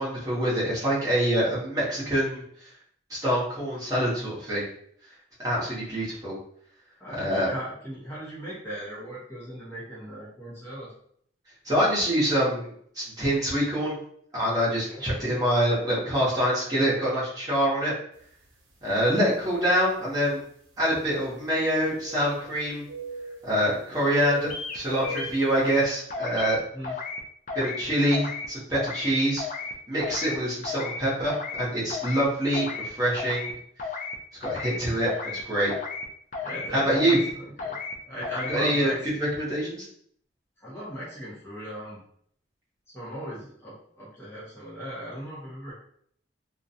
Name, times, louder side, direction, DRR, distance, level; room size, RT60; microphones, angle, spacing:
voice 1, 0.0-2.4 3.1-4.7 5.4-6.4 7.1-7.5 11.6-14.0 14.3-17.9 18.8-20.4 20.8-22.8 23.4-24.5 24.7-26.6 27.5-29.4 29.9-33.5 34.4-35.7 36.7-37.2 38.5-39.9, equal, 20° right, -8 dB, 0.9 m, -25 dB
voice 2, 7.0-10.9 14.8-15.0 26.7-26.9 36.4-37.8 38.0-39.0 40.6-42.0 42.9-45.7, equal, 15° left, -8 dB, 0.7 m, -38 dB
sound 1, 18.4-18.6 19.3-19.4 21.3-22.6 22.8-23.7 24.1-25.5, right 1 dB, 90° right, 0.6 m, -39 dB
sound 2, 24.5-24.8 25.0-25.8 26.1-26.6 26.8-27.2 27.5-27.8 28.1-28.5 28.7-29.1 29.4-29.7 30.0-30.4 30.6-31.0 31.3-31.6 31.9-32.3 32.5-32.9 33.2-33.5 33.8-34.2 34.4-34.8 35.1-35.4 35.7-36.1 36.3-36.7 37.0-37.3 37.6-37.9 38.2-38.6, left 4 dB, 40° left, 0.3 m, -34 dB
2.4 x 2.2 x 2.7 m, 0.64 s
head